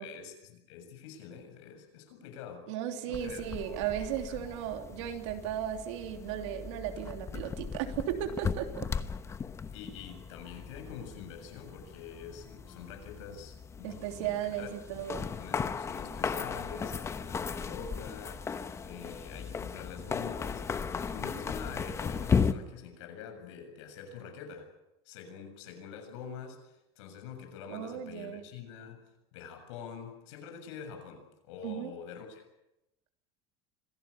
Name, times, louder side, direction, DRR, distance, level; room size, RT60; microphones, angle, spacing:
voice 1, 0.0-2.7 3.1-3.5 4.3-4.4 9.7-14.7 15.4-24.7 25.1-32.5, left 6 dB, 90° left, 6 dB, 7.0 m, -46 dB
voice 2, 2.7-8.9 13.8-15.3 27.7-28.4 31.6-31.9, right 11 dB, 85° right, 5 dB, 3.0 m, -36 dB
sound 1, 3.1-22.5, left 6 dB, 20° left, 1.0 m, -36 dB
25.5 x 17.0 x 8.5 m, 0.90 s
cardioid pair, 155°, 15 cm